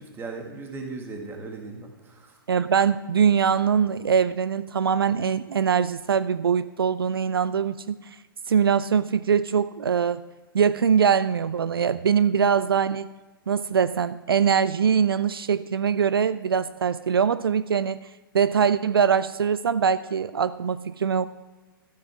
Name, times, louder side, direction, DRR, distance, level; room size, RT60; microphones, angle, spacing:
voice 1, 0.0-2.4, right 3 dB, 20° right, 1 dB, 2.0 m, -37 dB
voice 2, 2.5-8.0 8.5-10.2 10.5-13.1 13.5-18.1 18.3-21.3, right 7 dB, 75° right, 15 dB, 0.4 m, -22 dB
14.5 x 9.0 x 3.6 m, 1.2 s
figure-of-eight pair, 110°, 12 cm